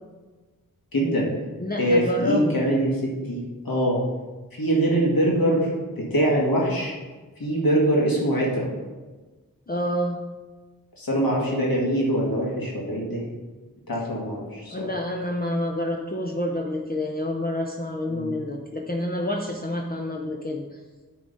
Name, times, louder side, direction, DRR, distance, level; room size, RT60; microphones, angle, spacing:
voice 1, 0.9-1.3 1.8-4.0 4.6-6.9 7.4-8.7 11.0-13.2 13.9-14.7 18.1-18.3, right 1 dB, 85° left, -3 dB, 1.8 m, -23 dB
voice 2, 1.6-2.6 9.7-10.2 14.7-20.8, left 1 dB, 25° left, 1 dB, 0.7 m, -28 dB
10.5 x 3.7 x 5.4 m, 1.3 s
wide cardioid pair, 85°, 34 cm